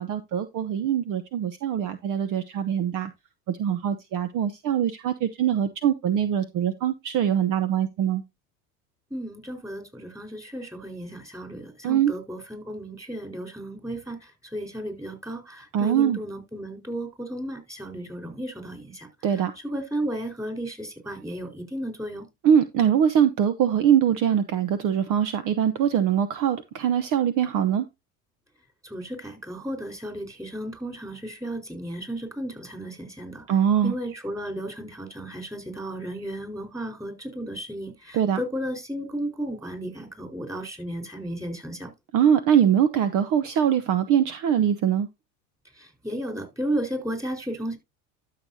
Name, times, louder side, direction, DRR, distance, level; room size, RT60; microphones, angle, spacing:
voice 1, 0.0-3.1 3.5-8.2 11.8-12.1 15.7-16.2 19.2-19.5 22.4-27.9 33.5-33.9 38.1-38.4 42.1-45.1, right 9 dB, 45° right, 0.9 m, -23 dB
voice 2, 9.1-22.2 28.8-33.6 33.8-41.9 45.8-47.8, right 1 dB, 10° right, 4.4 m, -34 dB
12.5 x 6.7 x 2.8 m
hypercardioid pair, 95°, 43 cm